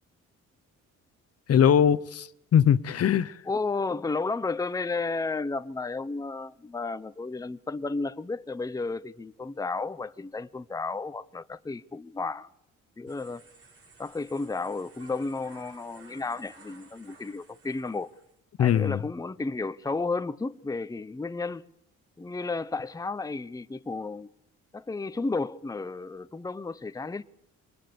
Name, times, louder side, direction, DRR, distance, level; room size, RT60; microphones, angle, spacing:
voice 1, 1.5-3.4 18.6-19.0, left 9 dB, 55° left, 0.9 m, -21 dB
voice 2, 3.5-12.5 13.0-13.4 14.0-18.1 18.6-21.6 22.2-24.3 24.7-27.2, left 3 dB, 10° left, 0.8 m, -32 dB
sound 1, 13.1-18.4, right 3 dB, 50° right, 7.3 m, -55 dB
24.5 x 20.0 x 6.9 m
cardioid pair, 90°, 30 cm